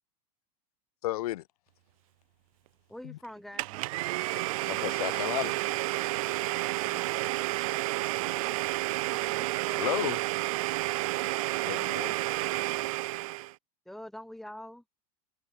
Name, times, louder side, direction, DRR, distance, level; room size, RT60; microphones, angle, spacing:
voice 1, 1.0-1.4 3.0-3.2 4.3-5.6 9.6-10.4 11.6-12.2, left 15 dB, 80° left, 1.3 m, -34 dB
voice 2, 2.9-3.8 6.8-7.1 9.4-10.0 12.3-12.7 13.9-14.8, left 1 dB, ahead, 1.0 m, -46 dB
Domestic sounds home sounds, 3.6-13.5, right 20 dB, 65° right, 1.8 m, -30 dB
supercardioid pair, 150°, 19 cm